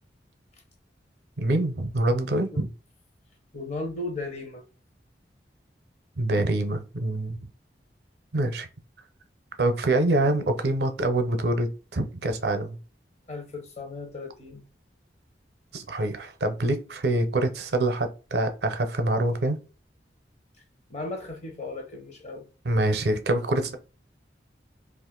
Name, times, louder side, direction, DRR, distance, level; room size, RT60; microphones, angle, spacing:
voice 1, 1.4-2.7 6.2-7.4 8.3-8.7 9.6-12.8 15.7-19.6 22.6-23.8, right 2 dB, 65° right, 0.6 m, -25 dB
voice 2, 3.5-4.6 13.3-14.6 20.9-22.5, left 2 dB, 40° left, 0.8 m, -36 dB
2.5 x 2.4 x 3.6 m
head